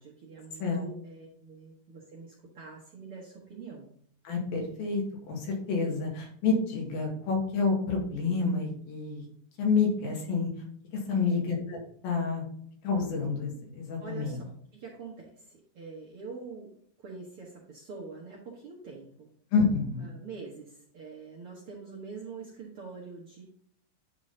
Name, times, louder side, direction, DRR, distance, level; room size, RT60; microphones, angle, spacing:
voice 1, 0.0-3.9 11.1-11.4 14.0-16.7 17.0-19.3 20.0-23.4, right 4 dB, 60° right, -3 dB, 1.5 m, -45 dB
voice 2, 4.3-5.0 5.3-9.3 9.6-10.5 11.1-12.5 12.8-14.4 19.5-20.1, left 4 dB, 85° left, -1 dB, 3.7 m, -28 dB
9.6 x 3.8 x 3.9 m, 0.62 s
omnidirectional pair, 4.1 m